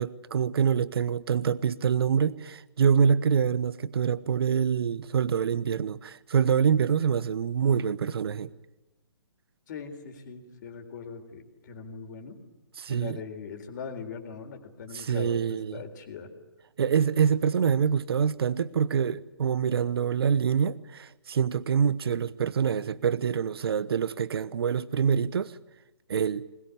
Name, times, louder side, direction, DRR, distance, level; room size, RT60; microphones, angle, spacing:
voice 1, 0.0-8.5 12.8-13.2 14.9-15.8 16.8-25.5 26.1-26.5, right 7 dB, 60° right, 1.1 m, -25 dB
voice 2, 9.7-12.4 12.9-15.4 15.7-16.3, left 6 dB, 45° left, 4.1 m, -40 dB
21.0 x 20.5 x 9.7 m
hypercardioid pair, 145°, 14 cm